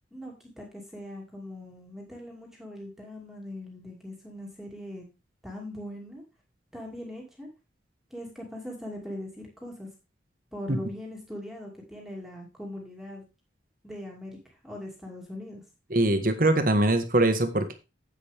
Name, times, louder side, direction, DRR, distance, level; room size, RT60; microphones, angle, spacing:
voice 1, 0.1-5.1 5.4-6.2 6.7-7.5 8.1-9.9 10.5-13.2 13.8-14.4 14.6-15.6, left 1 dB, ahead, -2 dB, 2.5 m, -40 dB
voice 2, 15.9-17.7, right 1 dB, 45° right, 8 dB, 1.4 m, -22 dB
10.0 x 8.2 x 3.5 m, 0.28 s
head